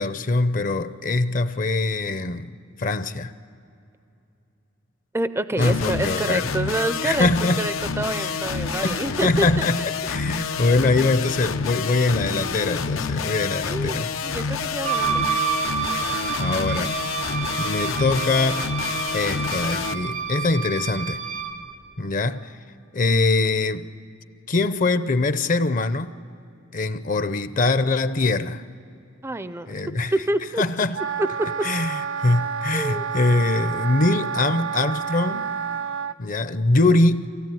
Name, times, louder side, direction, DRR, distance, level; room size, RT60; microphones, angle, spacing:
voice 1, 0.0-2.5 2.8-3.3 5.6-6.5 7.0-7.7 8.2-8.4 8.8-9.8 10.1-14.1 15.9-17.2 17.6-18.7 19.1-21.2 22.0-22.5 22.9-23.9 24.5-26.1 26.7-28.7 29.7-30.1 30.6-30.9 31.6-35.5 36.2-37.3, left 2 dB, 40° left, 0.6 m, -23 dB
voice 2, 5.1-7.3 7.6-9.6 13.6-15.3 29.2-29.7 30.1-30.6 32.7-33.0, right 1 dB, 15° right, 0.4 m, -27 dB
sound 1, 5.6-19.9, left 5 dB, 90° left, 0.7 m, -28 dB
Wind instrument woodwind instrument, 14.8-21.6, right 7 dB, 85° right, 2.2 m, -28 dB
Wind instrument woodwind instrument 2, 30.9-36.1, right 7 dB, 70° right, 0.6 m, -29 dB
24.0 x 16.5 x 9.2 m
head